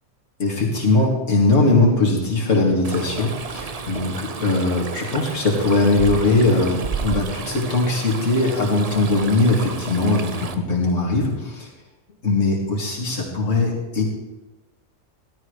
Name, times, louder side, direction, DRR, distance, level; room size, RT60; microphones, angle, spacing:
voice 1, 0.4-11.7 12.2-14.0, left 2 dB, 55° left, -2 dB, 2.8 m, -20 dB
Stream, 2.8-10.5, right 5 dB, 50° right, 0.4 m, -32 dB
13.5 x 13.0 x 3.2 m, 1.1 s
omnidirectional pair, 1.5 m